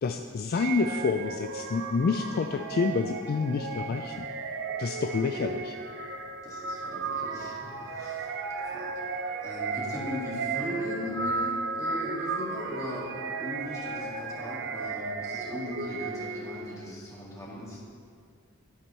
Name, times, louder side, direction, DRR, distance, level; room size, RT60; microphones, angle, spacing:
voice 1, 0.0-4.3 4.8-5.8, left 4 dB, 45° left, 5 dB, 0.3 m, -28 dB
sound 1, 0.5-16.8, right 4 dB, 60° right, 0.6 m, -34 dB
voice 2, 6.4-8.3 8.6-17.8, left 1 dB, 15° left, -6 dB, 1.9 m, -39 dB
11.5 x 4.6 x 5.4 m, 2.1 s
head